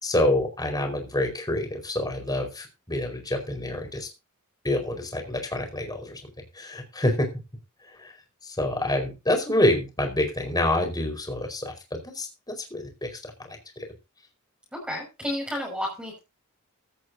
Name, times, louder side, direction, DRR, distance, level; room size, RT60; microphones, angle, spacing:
voice 1, 0.0-4.1 4.6-6.2 6.5-7.3 8.0-8.1 8.4-11.7 12.0-13.2, left 1 dB, 20° left, 4 dB, 4.7 m, -27 dB
voice 2, 14.7-16.2, left 1 dB, 5° right, -3 dB, 6.0 m, -31 dB
16.0 x 13.5 x 2.7 m, 0.29 s
head